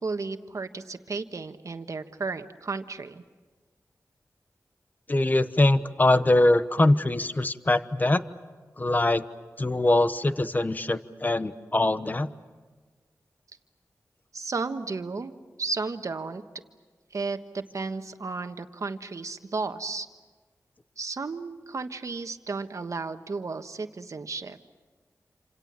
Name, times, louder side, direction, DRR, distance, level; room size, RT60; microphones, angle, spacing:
voice 1, 0.0-3.2 14.3-15.3 15.6-16.4 17.1-20.1 21.0-24.6, right 4 dB, 60° right, 8 dB, 1.3 m, -33 dB
voice 2, 5.1-8.2 8.8-9.2 9.6-12.3, left 2 dB, 30° left, 12 dB, 1.1 m, -23 dB
28.0 x 27.5 x 7.5 m, 1.4 s
wide cardioid pair, 75°, 6 cm